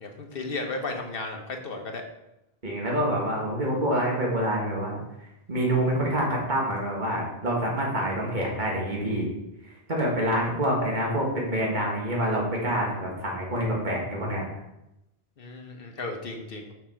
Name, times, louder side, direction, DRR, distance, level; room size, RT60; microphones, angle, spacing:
voice 1, 0.0-2.0 15.4-16.7, left 3 dB, 65° left, 3 dB, 1.2 m, -34 dB
voice 2, 2.6-5.0 5.5-9.3 9.9-14.4, right 1 dB, 50° right, -3 dB, 2.1 m, -26 dB
6.5 x 6.4 x 4.5 m, 0.88 s
omnidirectional pair, 1.0 m